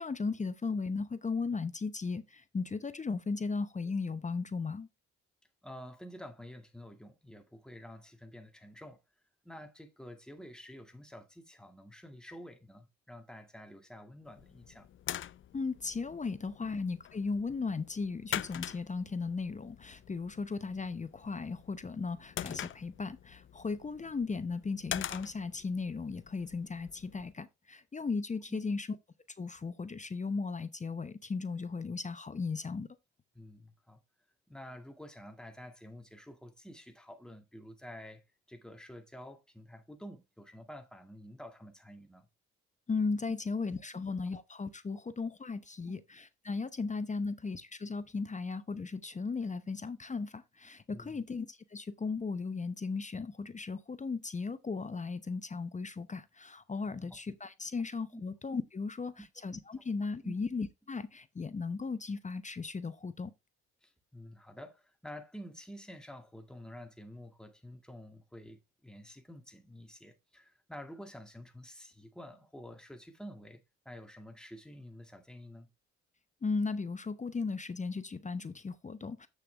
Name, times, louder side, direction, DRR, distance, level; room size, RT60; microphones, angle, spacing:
voice 1, 0.0-4.9 15.5-28.9 29.4-32.9 42.9-63.3 76.4-79.3, left 4 dB, 25° left, 0.8 m, -36 dB
voice 2, 5.6-9.0 9.4-14.9 33.3-34.0 34.5-38.2 38.5-42.3 45.9-46.0 50.9-51.2 56.9-57.2 58.1-58.2 60.2-60.3 63.8-75.7, equal, ahead, 2.0 m, -49 dB
sound 1, 14.3-27.3, left 11 dB, 45° left, 0.4 m, -44 dB
7.9 x 6.6 x 3.4 m
cardioid pair, 90°, 30 cm